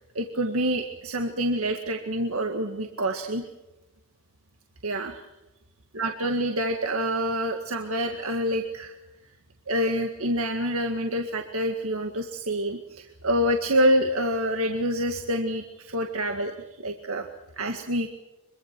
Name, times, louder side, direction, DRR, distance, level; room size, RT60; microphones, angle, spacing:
voice 1, 0.2-3.4 4.8-5.2 5.9-9.0 9.7-16.5 16.8-17.3 17.6-18.1, equal, 75° right, 4 dB, 2.0 m, -27 dB
24.5 x 23.5 x 6.1 m, 1.0 s
head